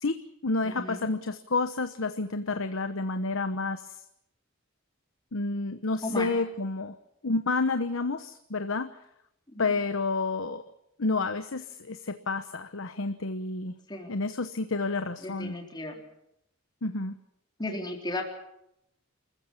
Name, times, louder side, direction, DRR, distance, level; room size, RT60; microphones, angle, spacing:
voice 1, 0.0-4.0 5.3-6.9 7.2-8.9 9.6-10.6 11.0-13.8 14.1-15.6 16.8-17.1, left 3 dB, 70° left, 9 dB, 1.0 m, -30 dB
voice 2, 0.6-1.1 6.0-6.4 9.5-9.7 13.9-14.2 15.2-15.9 17.6-18.2, left 1 dB, 20° left, 0 dB, 4.0 m, -35 dB
27.0 x 15.0 x 8.6 m, 0.80 s
head